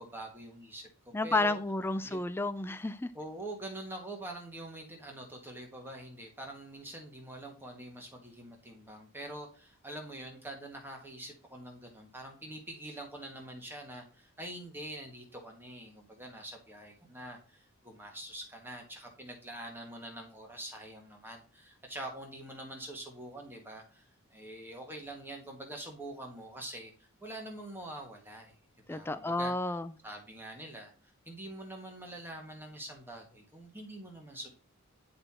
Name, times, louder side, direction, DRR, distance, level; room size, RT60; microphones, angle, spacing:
voice 1, 0.0-1.6 2.0-2.2 3.1-28.5 28.9-29.5 30.0-34.5, right 1 dB, 10° right, 1.5 m, -45 dB
voice 2, 1.1-3.1 28.9-29.9, left 2 dB, 10° left, 0.3 m, -31 dB
10.0 x 4.3 x 4.3 m
head